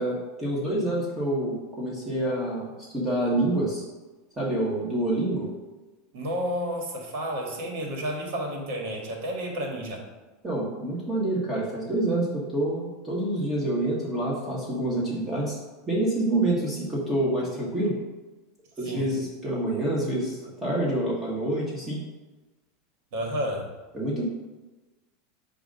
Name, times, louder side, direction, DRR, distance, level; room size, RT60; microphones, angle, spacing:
voice 1, 0.0-3.8 4.4-5.5 10.4-15.6 15.9-18.0 18.8-22.0 23.9-24.2, right 1 dB, 15° right, -6 dB, 1.3 m, -27 dB
voice 2, 6.1-10.0 18.8-19.1 23.1-23.7, equal, 65° right, 1 dB, 1.6 m, -31 dB
6.8 x 2.6 x 5.2 m, 1.2 s
supercardioid pair, 125°, 0 cm